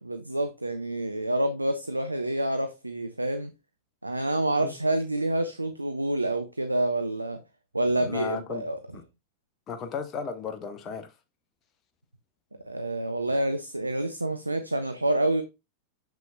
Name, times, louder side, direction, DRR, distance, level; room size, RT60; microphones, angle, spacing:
voice 1, 0.0-3.5 4.0-7.4 7.7-8.8 12.7-15.4, right 1 dB, 85° right, 0.5 m, -28 dB
voice 2, 7.9-8.6 8.9-9.0 9.7-11.1, left 6 dB, 30° left, 0.9 m, -35 dB
6.9 x 6.0 x 2.3 m
figure-of-eight pair, 90°, 0 cm